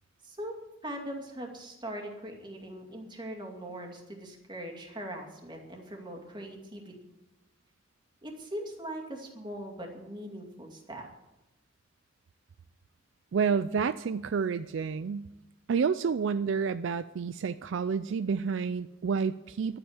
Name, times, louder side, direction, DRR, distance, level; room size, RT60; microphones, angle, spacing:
voice 1, 0.2-7.0 8.2-11.1, right 1 dB, 25° right, 2 dB, 2.4 m, -41 dB
voice 2, 13.3-15.3 15.7-19.8, right 6 dB, 65° right, 13 dB, 0.4 m, -29 dB
12.0 x 9.0 x 8.8 m, 0.98 s
head